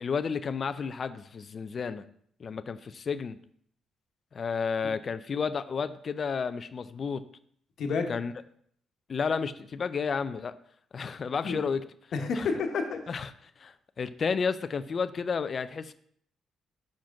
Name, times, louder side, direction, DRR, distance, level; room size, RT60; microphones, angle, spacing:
voice 1, 0.0-2.1 2.4-3.4 4.3-7.2 8.1-8.3 9.1-10.5 10.9-11.8 12.3-12.5 13.1-13.3 13.6-15.9, left 5 dB, 45° left, 11 dB, 0.4 m, -31 dB
voice 2, 7.8-8.1 11.4-11.6 12.1-13.0, left 4 dB, 65° left, 3 dB, 1.2 m, -29 dB
5.8 x 5.0 x 5.9 m, 0.64 s
cardioid pair, 90°, 0 cm